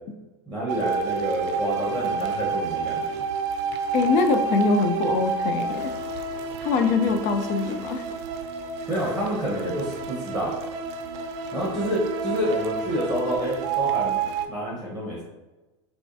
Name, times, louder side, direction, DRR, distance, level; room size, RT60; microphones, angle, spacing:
voice 1, 0.5-3.0 8.9-10.5 11.5-14.2 14.5-15.2, equal, 5° left, -6 dB, 1.0 m, -28 dB
sound 1, 0.7-14.5, right 5 dB, 65° right, 0.4 m, -29 dB
voice 2, 3.9-5.9 6.6-8.0, left 4 dB, 55° left, 8 dB, 0.4 m, -23 dB
4.3 x 2.3 x 2.6 m, 1.1 s
hypercardioid pair, 105°, 15 cm